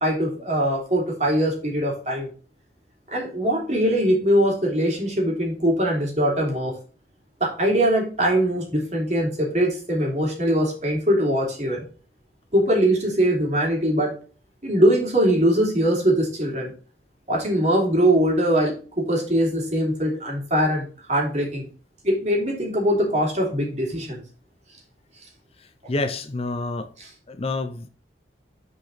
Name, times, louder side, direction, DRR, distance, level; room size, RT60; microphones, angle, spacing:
voice 1, 0.0-2.3 3.1-6.7 7.4-11.8 12.5-14.1 14.6-16.7 17.3-21.7 22.0-24.2 25.8-25.9, right 1 dB, 40° right, 2.8 m, -22 dB
voice 2, 25.6-26.9 27.3-27.9, left 2 dB, 35° left, 0.6 m, -28 dB
6.5 x 5.1 x 4.0 m
head